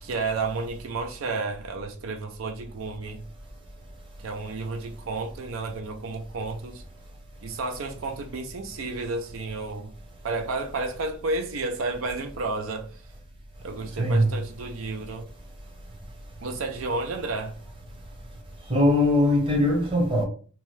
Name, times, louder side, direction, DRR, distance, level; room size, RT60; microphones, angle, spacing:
voice 1, 0.0-3.2 4.2-6.8 7.4-9.9 10.2-13.0 13.6-15.3 16.4-17.5, right 3 dB, 85° right, 0.5 m, -31 dB
voice 2, 14.0-14.3 18.7-20.2, left 1 dB, 25° right, 0.8 m, -21 dB
2.8 x 2.2 x 3.1 m
head